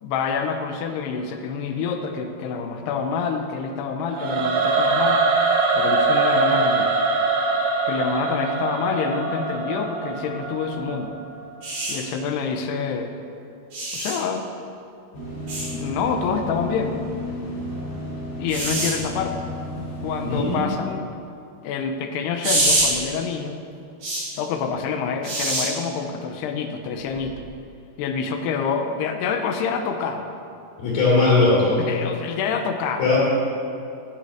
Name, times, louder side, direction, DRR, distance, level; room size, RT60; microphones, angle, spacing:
voice 1, 0.0-5.2 5.7-6.9 7.8-11.1 11.9-13.1 13.9-14.5 15.7-17.0 18.4-19.3 19.7-21.1 21.6-23.6 24.4-27.3 28.0-30.3 31.9-33.1, left 6 dB, 90° left, 6 dB, 2.8 m, -27 dB
Singing / Musical instrument, 4.1-11.2, right 3 dB, 85° right, 3.5 m, -22 dB
sound 1, 11.6-11.9 13.7-14.1 15.5-15.7 18.5-18.9 22.4-22.9 24.0-24.2 25.2-25.7 27.1-27.3, right 2 dB, 45° right, 4.5 m, -24 dB
sound 2, 15.1-20.6, equal, 35° left, 3.7 m, -33 dB
voice 2, 20.2-20.7 30.8-31.8 33.0-33.2, left 3 dB, 60° left, -6 dB, 4.5 m, -19 dB
13.0 x 7.1 x 6.4 m, 2.6 s
omnidirectional pair, 4.8 m